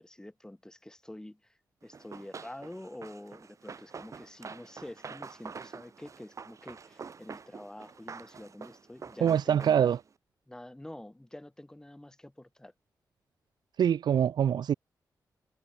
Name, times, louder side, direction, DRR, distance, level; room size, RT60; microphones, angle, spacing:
voice 1, 0.0-9.9 10.5-12.7, left 1 dB, 10° left, 8.0 m, -47 dB
Run, 1.9-10.1, right 5 dB, 45° right, 5.3 m, -46 dB
voice 2, 9.2-10.0 13.8-14.7, right 9 dB, 75° right, 0.9 m, -24 dB
wide cardioid pair, 120°, 7 cm